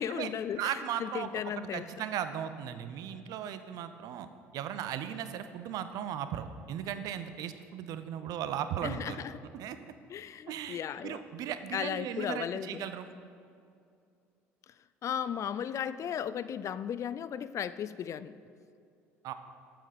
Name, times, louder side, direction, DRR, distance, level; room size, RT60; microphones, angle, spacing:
voice 1, 0.0-1.9 8.8-9.3 10.1-11.2 11.7-12.9 15.0-18.4, left 9 dB, 45° left, 15 dB, 0.4 m, -35 dB
voice 2, 0.6-4.3 4.5-9.2 9.5-9.8 10.5-13.1 19.2-19.3, right 9 dB, 65° right, 10 dB, 0.7 m, -37 dB
8.8 x 7.9 x 6.6 m, 2.5 s
hypercardioid pair, 65°, 7 cm